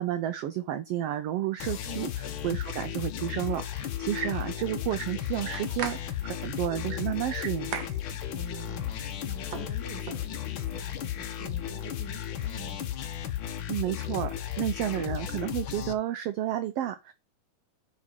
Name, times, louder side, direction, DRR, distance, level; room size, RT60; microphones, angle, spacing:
voice 1, 0.0-2.1 2.4-7.9 13.7-17.1, right 12 dB, 85° right, 1.3 m, -31 dB
sound 1, 1.6-15.9, left 11 dB, 75° left, 1.1 m, -34 dB
sound 2, 5.2-10.8, right 8 dB, 65° right, 1.9 m, -43 dB
voice 2, 8.3-13.0, right 2 dB, 15° left, 0.6 m, -46 dB
6.0 x 5.4 x 6.0 m
omnidirectional pair, 3.6 m